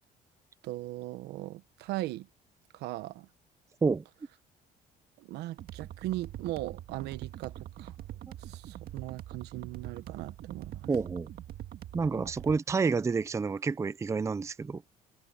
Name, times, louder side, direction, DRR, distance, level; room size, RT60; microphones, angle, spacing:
voice 1, 0.6-2.3 2.7-3.3 5.2-7.9 8.4-10.9, right 16 dB, 90° right, 1.2 m, -38 dB
sound 1, 5.6-12.6, right 12 dB, 65° right, 1.8 m, -44 dB
voice 2, 10.9-11.3 11.9-14.8, right 4 dB, 15° right, 0.5 m, -29 dB
cardioid pair, 110°, 17 cm